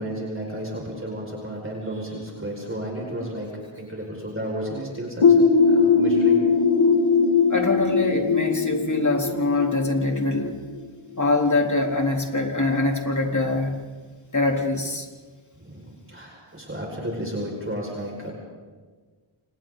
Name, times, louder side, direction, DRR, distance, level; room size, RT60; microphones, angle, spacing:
voice 1, 0.0-3.5 3.8-6.4 15.6-18.3, right 1 dB, 25° right, -2 dB, 5.5 m, -33 dB
sound 1, 5.2-10.8, left 5 dB, 75° left, 2.3 m, -20 dB
voice 2, 7.5-10.6 11.2-13.8 14.3-15.1, left 2 dB, 35° left, 1 dB, 3.7 m, -23 dB
29.5 x 27.5 x 4.0 m, 1.4 s
wide cardioid pair, 80°, 48 cm